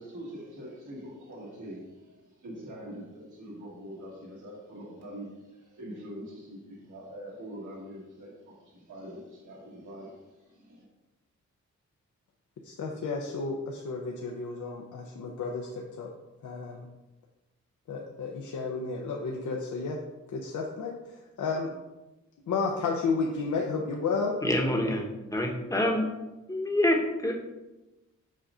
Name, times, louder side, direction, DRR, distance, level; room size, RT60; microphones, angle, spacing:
voice 1, 0.0-10.9, equal, 80° right, -4 dB, 1.9 m, -44 dB
voice 2, 12.6-16.1 16.4-16.8 17.9-20.0 20.3-21.7 22.5-24.3, left 4 dB, 80° left, 0 dB, 0.7 m, -32 dB
voice 3, 24.4-25.0 25.3-26.1 26.5-27.3, left 1 dB, 10° left, 1 dB, 1.0 m, -26 dB
7.3 x 2.5 x 5.4 m, 1.0 s
wide cardioid pair, 110°, 30 cm